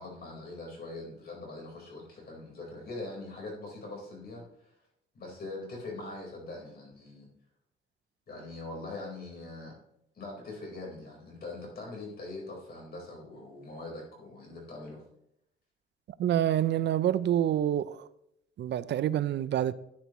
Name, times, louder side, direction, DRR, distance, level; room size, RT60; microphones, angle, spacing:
voice 1, 0.0-4.4 5.1-7.3 8.3-9.8 10.1-15.0, left 2 dB, 50° left, -1 dB, 4.3 m, -42 dB
voice 2, 16.2-18.1 18.6-19.7, right 11 dB, 60° right, 16 dB, 0.5 m, -27 dB
13.0 x 9.5 x 3.1 m, 0.79 s
cardioid pair, 90°, 20 cm